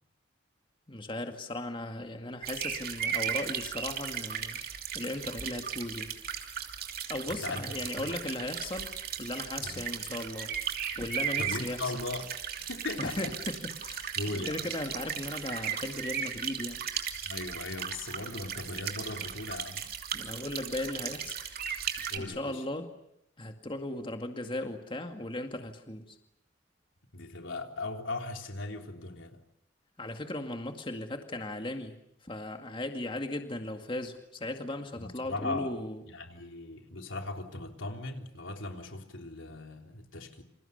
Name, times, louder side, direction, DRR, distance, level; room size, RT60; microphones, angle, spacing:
voice 1, 0.9-4.6 4.9-6.2 7.1-10.5 11.0-11.9 13.0-16.8 20.1-21.4 22.2-23.0 23.4-26.2 30.0-36.0, left 1 dB, 25° left, 5 dB, 2.1 m, -37 dB
sound 1, 2.4-22.2, right 8 dB, 50° right, 3.0 m, -36 dB
voice 2, 7.3-7.6 8.0-8.1 9.6-9.8 11.4-12.3 12.6-13.2 14.2-14.7 17.2-19.9 22.1-22.6 27.1-29.4 35.0-35.7 36.1-40.4, left 2 dB, 85° left, 4 dB, 3.5 m, -38 dB
29.0 x 27.0 x 6.8 m, 0.77 s
head